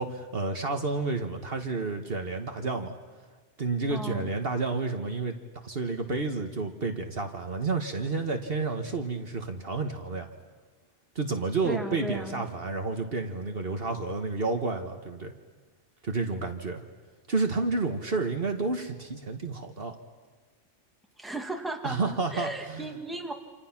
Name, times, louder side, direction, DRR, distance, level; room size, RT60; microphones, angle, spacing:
voice 1, 0.0-2.9 3.6-5.3 5.6-10.3 11.1-15.3 16.0-16.8 17.3-20.0 21.8-22.9, right 3 dB, 55° right, 5 dB, 1.7 m, -30 dB
voice 2, 3.9-4.3 11.6-12.4 21.2-23.3, right 1 dB, ahead, 3 dB, 1.9 m, -36 dB
29.0 x 27.0 x 6.0 m, 1.4 s
omnidirectional pair, 1.2 m